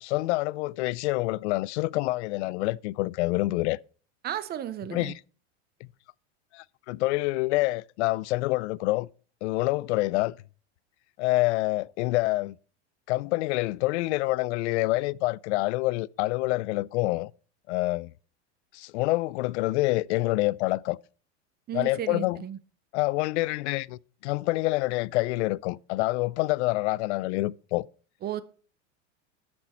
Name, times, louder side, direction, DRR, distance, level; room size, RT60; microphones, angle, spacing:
voice 1, 0.0-3.8 4.9-5.1 6.5-9.1 9.4-10.3 11.2-12.5 13.1-17.3 17.7-18.1 18.8-21.0 21.7-22.4 22.9-27.8, left 20 dB, 70° left, 0.5 m, -27 dB
voice 2, 4.2-5.2 21.7-22.6 28.2-28.4, right 11 dB, 25° right, 0.7 m, -34 dB
13.5 x 6.1 x 4.4 m
supercardioid pair, 125°, 36 cm